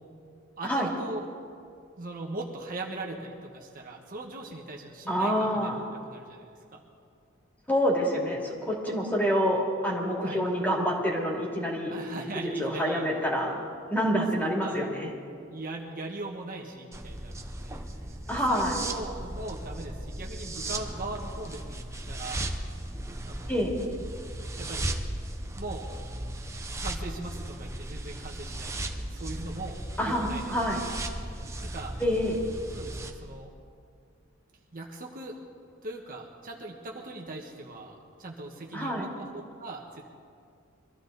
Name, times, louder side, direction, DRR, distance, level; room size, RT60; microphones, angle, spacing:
voice 1, 0.6-1.3 2.0-6.8 8.8-9.0 10.2-10.4 11.9-13.1 14.5-14.8 15.5-21.8 22.1-22.5 23.2-23.6 24.6-24.9 25.5-25.9 26.8-29.8 30.0-30.4 30.7-31.0 31.2-32.0 32.7-33.5 34.7-35.4 35.8-39.3 39.6-40.0, right 2 dB, 45° right, -1 dB, 1.4 m, -40 dB
voice 2, 5.1-5.8 7.7-12.0 12.3-13.6 13.9-15.1 18.3-18.7 23.5-23.7 30.0-30.8 32.0-32.4 38.7-39.1, equal, 10° left, -2 dB, 2.6 m, -27 dB
sound 1, 16.9-33.1, right 1 dB, 15° right, 0.9 m, -36 dB
23.5 x 14.0 x 4.0 m, 2.3 s
head